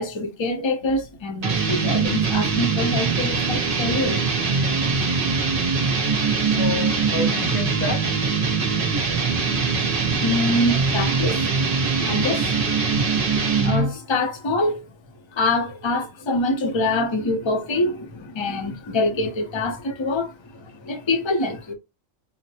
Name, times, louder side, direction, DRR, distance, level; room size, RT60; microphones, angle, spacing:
voice 1, 0.0-4.3 10.2-12.9 13.6-14.9 15.3-21.7, left 2 dB, 30° left, 0.6 m, -25 dB
sound 1, 1.4-14.0, right 4 dB, 50° right, 0.8 m, -22 dB
voice 2, 6.5-8.1 8.9-9.4, left 4 dB, 75° left, 1.1 m, -30 dB
5.6 x 2.1 x 2.8 m
omnidirectional pair, 1.4 m